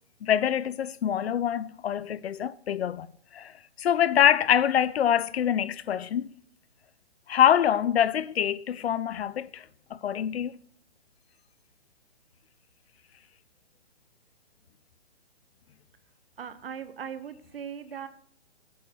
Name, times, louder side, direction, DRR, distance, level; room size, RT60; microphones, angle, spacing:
voice 1, 0.2-3.1 3.3-6.3 7.3-10.5, left 9 dB, 65° left, 0.5 m, -25 dB
voice 2, 16.4-18.1, right 8 dB, 55° right, 0.9 m, -39 dB
15.0 x 8.5 x 2.3 m
hypercardioid pair, 165°, 35 cm